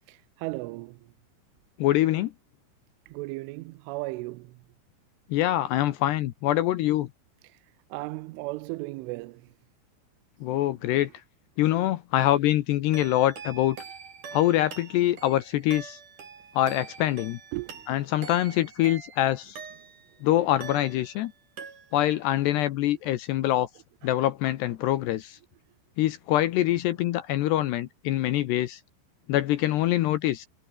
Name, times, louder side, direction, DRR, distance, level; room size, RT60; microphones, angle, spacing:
voice 1, 0.4-1.0 3.1-4.5 7.9-9.4 17.5-17.8, right 22 dB, 85° right, 3.1 m, -35 dB
voice 2, 1.8-2.3 5.3-7.1 10.4-11.1 11.6-13.8 14.3-16.0 16.6-17.4 17.9-19.6 20.2-21.3 21.9-23.7 24.0-25.4 26.0-28.8 29.3-30.5, left 14 dB, 75° left, 2.7 m, -24 dB
sound 1, 12.9-20.2 20.6-21.3 21.6-22.2, right 6 dB, 40° right, 4.8 m, -44 dB
omnidirectional pair, 5.8 m